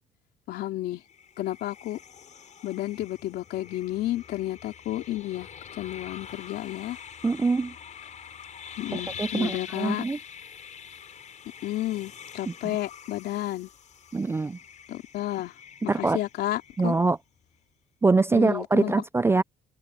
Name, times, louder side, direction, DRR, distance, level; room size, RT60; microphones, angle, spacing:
voice 1, 0.5-1.0 1.4-2.0 2.6-5.5 5.8-7.0 8.8-10.0 11.6-13.7 14.9-15.5 15.8-17.0 18.3-18.9, left 14 dB, 75° left, 3.4 m, -31 dB
sound 1, 1.0-17.3, left 8 dB, 45° left, 4.6 m, -45 dB
voice 2, 7.2-7.7 8.9-10.2 14.1-14.6 15.9-16.2 16.8-17.2 18.0-19.4, right 3 dB, 15° right, 0.3 m, -24 dB
cardioid pair, 110°, 17 cm